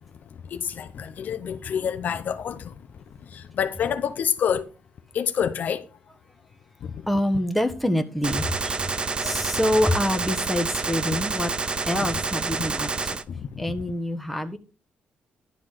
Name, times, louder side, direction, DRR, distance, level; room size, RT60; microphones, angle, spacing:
voice 1, 0.5-2.6 3.3-4.6 5.1-5.8 9.2-9.4 12.0-12.1 12.6-12.7 13.6-13.8, left 8 dB, 60° left, 0.7 m, -27 dB
voice 2, 7.1-8.8 9.2-13.2 13.6-14.6, left 1 dB, ahead, 1.3 m, -26 dB
Gunshot gunfire, 8.2-13.2, right 4 dB, 30° right, 0.6 m, -28 dB
11.5 x 4.0 x 6.5 m
cardioid pair, 90°, 3 cm